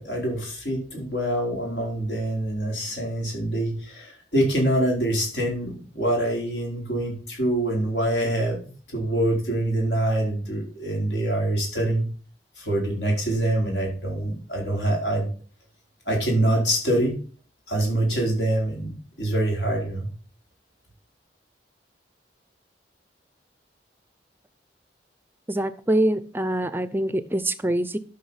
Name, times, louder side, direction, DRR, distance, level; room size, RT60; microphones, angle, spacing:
voice 1, 0.0-12.0 12.6-15.3 16.1-17.1 17.7-20.1, right 1 dB, 75° left, -1 dB, 4.6 m, -25 dB
voice 2, 25.5-28.0, right 1 dB, 10° right, 14 dB, 0.5 m, -24 dB
12.0 x 5.8 x 5.6 m, 0.41 s
head